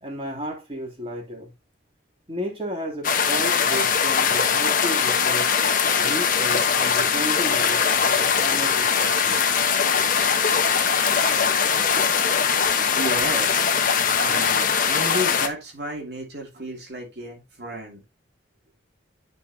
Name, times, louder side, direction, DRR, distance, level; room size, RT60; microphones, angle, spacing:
voice 1, 0.0-1.5 2.3-5.5 6.0-9.4, equal, 30° right, 2.9 m, -33 dB
sound 1, 3.0-15.5, left 6 dB, 45° left, 1.1 m, -21 dB
voice 2, 11.4-11.8 12.3-13.9 14.2-18.0, right 1 dB, 55° right, 2.7 m, -33 dB
10.0 x 5.4 x 2.8 m
head